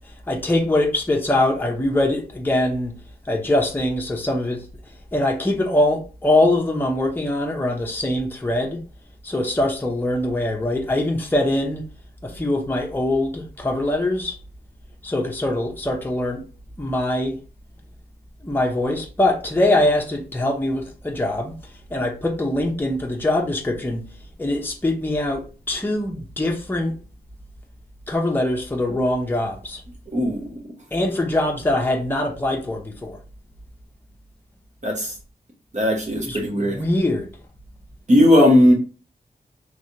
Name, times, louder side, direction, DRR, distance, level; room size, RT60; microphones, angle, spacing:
voice 1, 0.3-3.0 3.3-4.6 5.1-8.8 9.2-11.8 12.2-14.4 15.0-16.4 16.8-17.4 18.4-21.5 21.9-24.0 24.4-27.0 28.1-29.8 30.9-33.2 36.2-37.3, left 1 dB, 10° left, 0.7 m, -23 dB
voice 2, 30.1-30.6 34.8-35.1 35.7-36.8 38.1-38.7, left 1 dB, 45° right, 1.2 m, -17 dB
3.4 x 3.2 x 2.7 m
wide cardioid pair, 85°, 17 cm